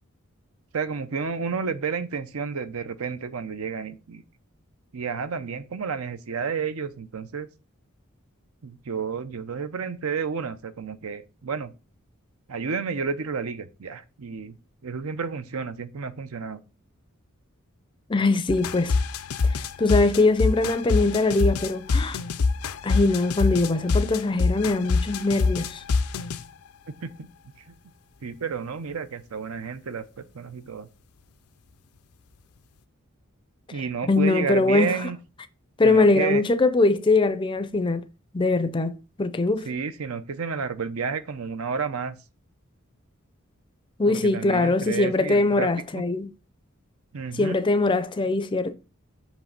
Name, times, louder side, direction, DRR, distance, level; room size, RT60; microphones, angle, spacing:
voice 1, 0.7-4.2 4.9-7.5 8.6-11.7 12.5-14.6 14.8-16.6 27.0-27.3 28.2-30.9 33.7-35.2 35.8-36.4 39.6-42.2 44.1-45.7 45.9-46.1 47.1-47.6, right 5 dB, 80° right, 0.6 m, -31 dB
voice 2, 18.1-19.0 19.5-22.2 22.8-25.8 34.1-34.9 35.8-38.0 38.3-39.7 44.0-46.3 47.3-48.7, left 3 dB, 20° left, 0.4 m, -22 dB
sound 1, 18.5-26.4, left 4 dB, 85° left, 0.5 m, -25 dB
7.4 x 3.1 x 5.2 m
head